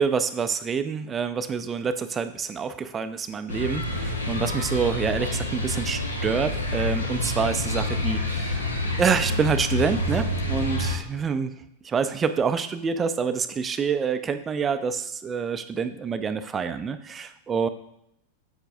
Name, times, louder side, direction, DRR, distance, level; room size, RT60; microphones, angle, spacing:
voice 1, 0.0-8.7 9.0-11.5 11.8-17.7, right 6 dB, 20° right, 10 dB, 0.4 m, -27 dB
sound 1, 3.5-11.0, left 1 dB, 75° left, 0.9 m, -28 dB
8.3 x 7.9 x 2.6 m, 0.77 s
figure-of-eight pair, 90°, 0 cm